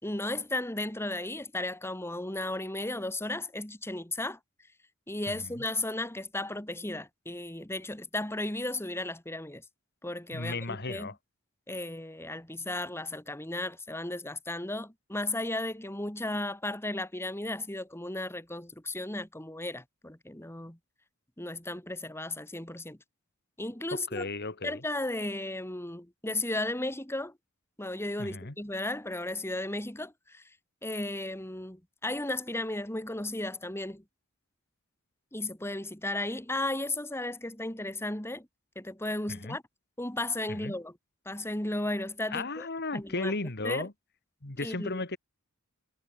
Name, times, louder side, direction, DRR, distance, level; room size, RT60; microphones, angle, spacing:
voice 1, 0.0-4.4 5.1-9.6 10.0-11.1 11.7-20.8 21.4-23.0 23.6-24.3 24.6-27.3 27.8-30.4 30.8-34.0 35.3-38.5 38.8-39.6 40.0-41.0 41.3-42.7 42.9-43.4 43.6-43.9 44.6-45.0, left 2 dB, 10° left, 2.6 m, -35 dB
voice 2, 10.3-11.2 23.9-24.8 28.2-28.5 39.3-39.6 40.5-40.7 42.3-43.9 44.4-45.2, left 3 dB, 50° left, 2.2 m, -35 dB
head